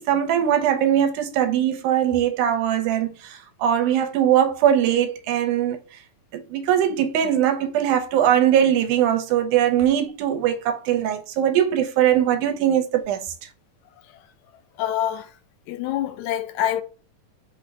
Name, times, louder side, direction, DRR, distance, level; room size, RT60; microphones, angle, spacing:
voice 1, 0.0-5.8 6.3-13.2, right 10 dB, 85° right, 2.0 m, -21 dB
voice 2, 14.8-15.3 15.7-16.8, left 12 dB, 80° left, 1.7 m, -25 dB
5.7 x 2.0 x 4.6 m
omnidirectional pair, 3.6 m